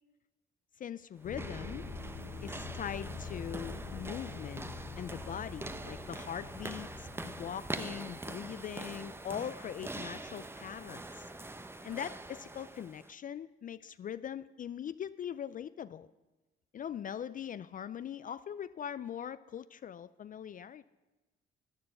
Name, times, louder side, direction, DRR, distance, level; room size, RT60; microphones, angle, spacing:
voice 1, 0.8-1.9 2.4-4.7 5.0-11.3 11.8-16.1 16.7-20.9, left 9 dB, 45° left, 15 dB, 0.4 m, -41 dB
sound 1, 1.2-9.0, left 4 dB, 90° left, 2.5 m, -45 dB
sound 2, 1.2-13.1, right 2 dB, 10° right, 0.7 m, -44 dB
11.0 x 9.5 x 7.7 m, 1.1 s
cardioid pair, 90°, 20 cm